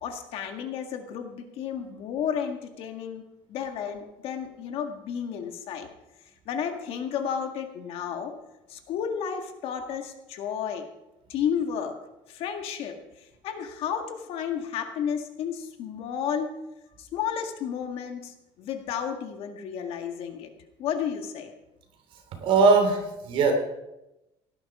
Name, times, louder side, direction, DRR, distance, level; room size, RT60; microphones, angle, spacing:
voice 1, 0.0-3.2 3.5-5.9 6.5-8.4 8.7-10.9 11.3-12.0 12.3-16.5 17.0-20.5 20.8-21.5, left 8 dB, 55° left, 5 dB, 1.8 m, -32 dB
voice 2, 22.4-23.5, right 4 dB, 50° right, 4 dB, 3.3 m, -20 dB
17.5 x 11.0 x 5.0 m, 0.93 s
cardioid pair, 175°, 11 cm